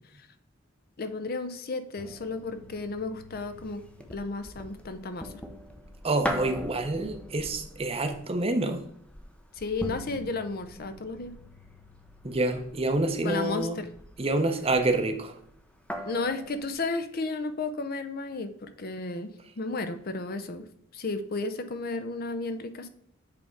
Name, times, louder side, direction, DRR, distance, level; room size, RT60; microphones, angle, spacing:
voice 1, 1.0-3.8 4.1-5.3 9.6-11.3 13.2-13.9 16.0-20.7 20.9-22.9, left 3 dB, 50° left, 9 dB, 0.6 m, -33 dB
sound 1, 2.0-16.7, equal, 5° left, 0.6 m, -42 dB
voice 2, 6.0-8.8 12.2-13.8 14.2-15.3, right 2 dB, 30° right, 6 dB, 0.8 m, -27 dB
7.8 x 3.5 x 4.6 m, 0.68 s
head